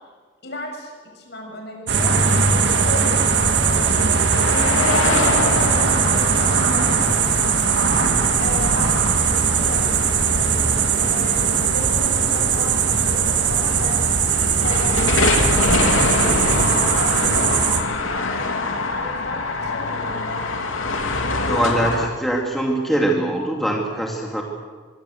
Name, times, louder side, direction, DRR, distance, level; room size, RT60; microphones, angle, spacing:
voice 1, 0.4-3.9 4.3-10.2 11.0-14.1 14.6-18.3 18.9-20.5, left 1 dB, 55° left, 2 dB, 7.1 m, -35 dB
sound 1, 1.9-17.8, right 6 dB, 60° right, 2.0 m, -19 dB
sound 2, 4.3-22.1, left 3 dB, 80° left, 3.0 m, -25 dB
Bird, 8.0-16.2, right 1 dB, 35° right, 3.8 m, -40 dB
voice 2, 21.4-24.4, right 1 dB, ahead, -1 dB, 2.4 m, -22 dB
24.5 x 23.0 x 7.9 m, 1.5 s
head